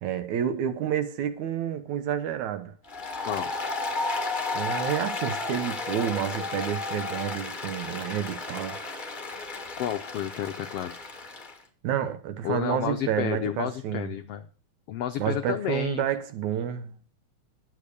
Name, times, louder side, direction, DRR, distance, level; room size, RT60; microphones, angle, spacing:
voice 1, 0.0-2.7 4.5-8.8 11.8-14.1 15.2-16.9, right 9 dB, 70° right, 2.4 m, -29 dB
Applause, 2.8-11.6, left 3 dB, 35° left, 0.8 m, -33 dB
voice 2, 9.8-11.0 12.4-14.5 14.9-16.0, left 11 dB, 80° left, 1.3 m, -31 dB
11.0 x 8.6 x 6.7 m
omnidirectional pair, 3.6 m